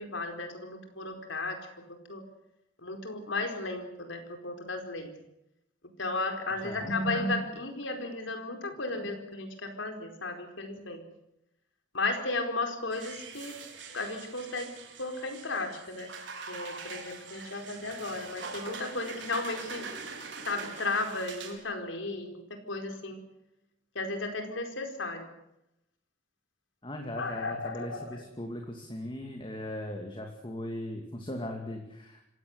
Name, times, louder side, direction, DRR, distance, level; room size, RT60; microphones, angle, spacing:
voice 1, 0.0-2.2 2.8-5.1 6.0-11.1 11.9-13.6 13.9-14.7 15.0-16.1 16.5-19.9 20.5-22.4 22.7-23.2 23.9-25.2 27.1-28.2, left 2 dB, 85° left, 5 dB, 4.7 m, -34 dB
voice 2, 6.6-6.9 26.8-32.3, left 1 dB, 25° left, 3 dB, 2.5 m, -38 dB
sound 1, 12.9-21.5, right 5 dB, 70° right, 4.9 m, -43 dB
26.5 x 17.0 x 8.1 m, 0.86 s
head